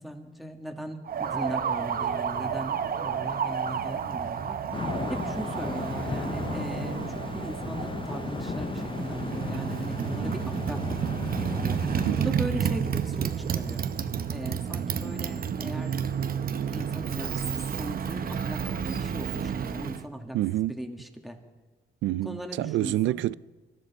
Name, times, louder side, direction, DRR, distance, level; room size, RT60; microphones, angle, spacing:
voice 1, 0.0-4.6 5.1-10.8 11.4-11.8 12.2-13.9 14.3-16.0 16.6-20.4 20.7-21.4 22.2-23.2, equal, ahead, 1.9 m, -38 dB
Motorcycle, 1.1-20.0, right 7 dB, 50° right, 0.8 m, -31 dB
sound 1, 4.7-12.3, left 5 dB, 25° left, 0.5 m, -35 dB
voice 2, 12.1-12.4 20.3-20.8 22.0-23.3, right 14 dB, 70° right, 0.4 m, -27 dB
24.5 x 13.0 x 4.2 m
cardioid pair, 90°, 20 cm